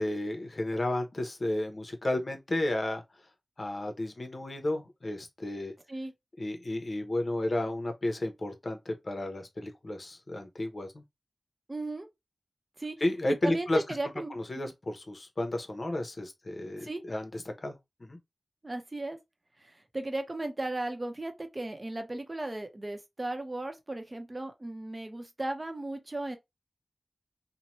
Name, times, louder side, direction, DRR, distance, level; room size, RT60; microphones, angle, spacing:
voice 1, 0.0-3.0 3.6-5.7 6.4-11.0 13.0-13.8 14.3-18.2, left 1 dB, 55° left, 0.8 m, -32 dB
voice 2, 11.7-12.1 12.8-13.0 13.2-14.7 16.8-17.0 18.6-19.2 19.6-26.4, right 2 dB, 35° right, 0.7 m, -36 dB
2.8 x 2.1 x 3.0 m
wide cardioid pair, 55°, 0 cm